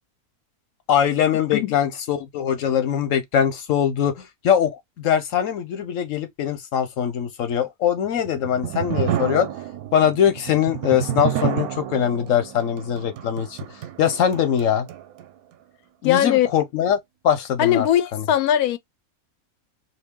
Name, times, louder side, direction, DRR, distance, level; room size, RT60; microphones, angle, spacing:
voice 1, 0.9-9.5 9.9-13.6 14.0-14.9 16.0-17.0 17.2-17.9 18.1-18.3, left 9 dB, 65° left, 1.2 m, -22 dB
sound 1, 8.1-15.3, right 10 dB, 75° right, 1.1 m, -29 dB
voice 2, 16.0-16.5 17.6-18.8, left 11 dB, 85° left, 1.1 m, -19 dB
2.7 x 2.7 x 3.6 m
omnidirectional pair, 1.5 m